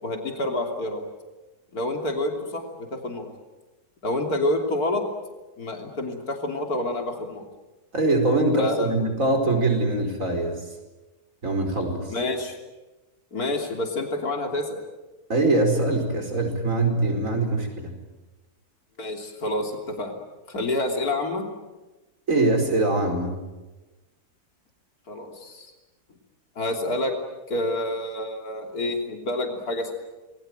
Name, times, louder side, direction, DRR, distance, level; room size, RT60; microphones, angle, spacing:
voice 1, 0.0-1.0 1.7-3.3 4.0-5.0 5.6-7.4 8.6-8.9 12.1-12.5 13.3-14.8 19.0-20.1 20.5-21.5 25.1-25.7 26.6-27.1 27.5-29.9, left 1 dB, 70° left, 3 dB, 3.6 m, -28 dB
voice 2, 7.9-10.7 11.4-12.1 15.3-17.9 22.3-23.4, right 2 dB, 55° right, 4 dB, 5.2 m, -23 dB
28.5 x 21.0 x 9.1 m, 1.1 s
omnidirectional pair, 1.7 m